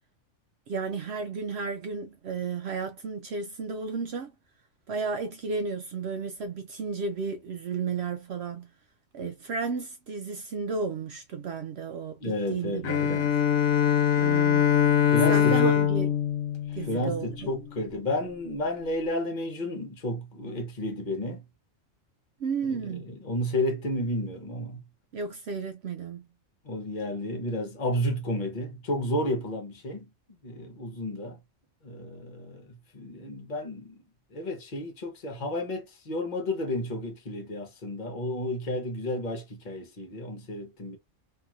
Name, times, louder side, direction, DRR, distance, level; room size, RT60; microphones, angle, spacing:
voice 1, 0.7-4.3 4.9-8.7 9.1-13.3 14.2-14.7 15.3-16.1 16.7-17.5 22.4-23.1 25.1-26.2, right 4 dB, 65° right, 0.7 m, -33 dB
voice 2, 12.2-13.3 15.1-15.8 16.7-21.4 22.7-24.8 26.6-30.1 30.4-31.4 31.8-32.7 32.9-34.0 34.3-41.0, left 1 dB, 40° left, 1.0 m, -32 dB
Bowed string instrument, 12.8-17.6, left 9 dB, 90° left, 1.1 m, -23 dB
3.0 x 2.7 x 2.3 m
omnidirectional pair, 1.4 m